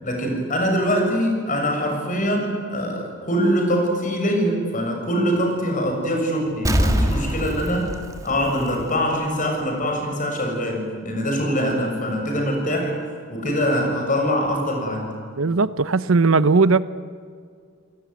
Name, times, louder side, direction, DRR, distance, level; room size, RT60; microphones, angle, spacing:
voice 1, 0.0-7.9 8.2-12.9 13.3-15.2, equal, 40° left, 2 dB, 6.7 m, -23 dB
Explosion, 6.6-9.2 9.6-9.7, equal, 15° right, 1.8 m, -24 dB
voice 2, 15.4-16.8, right 4 dB, 70° right, 16 dB, 0.8 m, -18 dB
28.5 x 18.5 x 9.5 m, 2.1 s
head